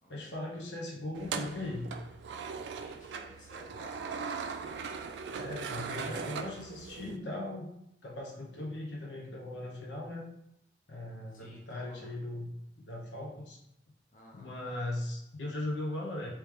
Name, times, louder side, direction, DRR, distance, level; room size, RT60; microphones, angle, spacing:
voice 1, 0.1-1.9 5.3-7.7 8.0-10.3 10.9-13.6 14.3-16.3, left 1 dB, 90° left, -1 dB, 0.9 m, -38 dB
sound 1, 1.1-7.2, right 5 dB, 80° right, 0.3 m, -39 dB
voice 2, 2.8-4.0 11.3-12.2 14.1-14.5, left 1 dB, 45° left, -3 dB, 0.8 m, -55 dB
3.1 x 3.0 x 3.5 m, 0.77 s
head